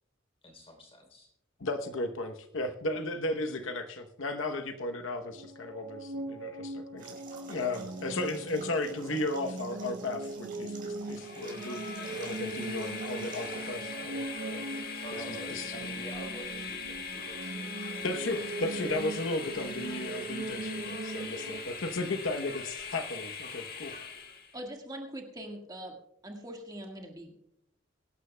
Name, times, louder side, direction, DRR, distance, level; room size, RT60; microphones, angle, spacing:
voice 1, 0.4-1.3 15.0-18.0 19.0-19.1 21.5-21.8, equal, 30° left, 3 dB, 3.3 m, -48 dB
voice 2, 1.6-7.1 7.5-14.7 15.2-15.8 18.0-23.9, left 2 dB, 75° left, 6 dB, 0.9 m, -35 dB
sound 1, 5.4-21.6, right 2 dB, 75° right, 1.4 m, -40 dB
sound 2, 7.0-13.8, right 4 dB, 45° right, 4.7 m, -50 dB
Train, 11.1-24.6, left 5 dB, 50° left, 1.7 m, -41 dB
voice 3, 24.5-26.0 26.2-27.4, right 1 dB, 20° right, 2 dB, 1.6 m, -42 dB
23.5 x 11.5 x 2.2 m, 0.80 s
head